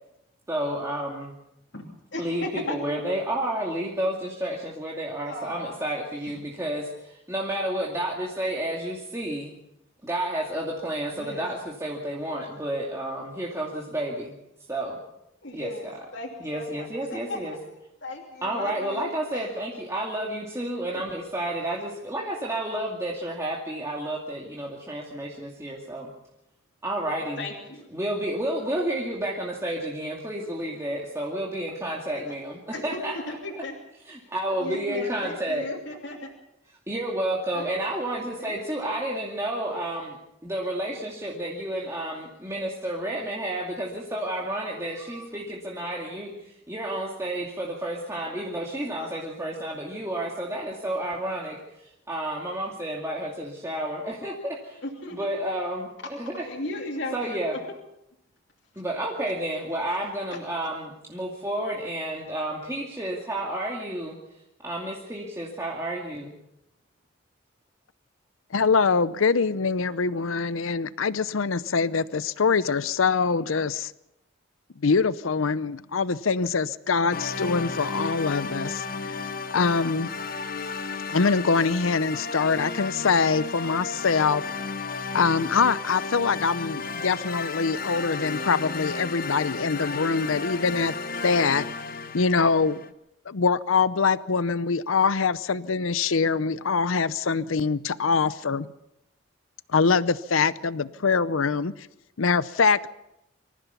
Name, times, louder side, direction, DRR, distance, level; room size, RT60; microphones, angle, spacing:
voice 1, 0.5-1.3 2.2-9.5 10.0-14.3 14.7-15.0 15.5-15.9 16.4-17.5 18.4-26.1 26.8-27.4 27.9-33.2 34.1-35.6 36.9-40.2 40.4-54.8 55.1-56.4 57.1-57.5 58.8-64.2 64.6-66.3, right 1 dB, 15° right, -3 dB, 2.5 m, -31 dB
voice 2, 1.7-3.1 5.3-5.9 6.2-6.3 11.1-11.4 15.4-17.7 18.0-19.5 20.9-21.0 27.4-27.9 32.3-32.4 32.7-33.7 34.1-34.3 34.6-36.3 37.5-37.7 38.2-38.6 38.8-38.9 54.8-55.3 56.4-57.6 60.3-60.7, left 2 dB, 60° left, -2 dB, 3.0 m, -37 dB
voice 3, 68.5-73.9 74.8-79.1 79.5-80.2 81.1-84.5 85.1-90.9 91.2-91.7 92.1-92.8 93.3-98.7 99.7-101.7 102.2-102.9, left 5 dB, 90° left, 17 dB, 0.7 m, -24 dB
sound 1, 77.1-92.9, left 4 dB, 45° left, 1.1 m, -33 dB
25.0 x 15.0 x 7.0 m, 0.86 s
head